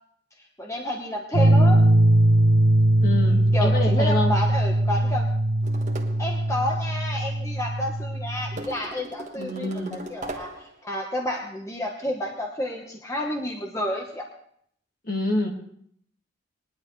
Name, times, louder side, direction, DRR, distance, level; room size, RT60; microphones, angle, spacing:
voice 1, 0.6-1.8 3.5-5.3 6.2-14.3, left 1 dB, 15° left, 0 dB, 1.1 m, -30 dB
sound 1, 1.3-8.6, right 1 dB, 85° right, 0.9 m, -20 dB
voice 2, 3.0-4.3 9.3-10.0 15.0-15.5, left 2 dB, 45° left, 1 dB, 2.0 m, -27 dB
sound 2, 5.6-6.3 8.6-10.7, right 2 dB, 40° right, 1.4 m, -38 dB
20.5 x 11.0 x 3.2 m, 0.67 s
head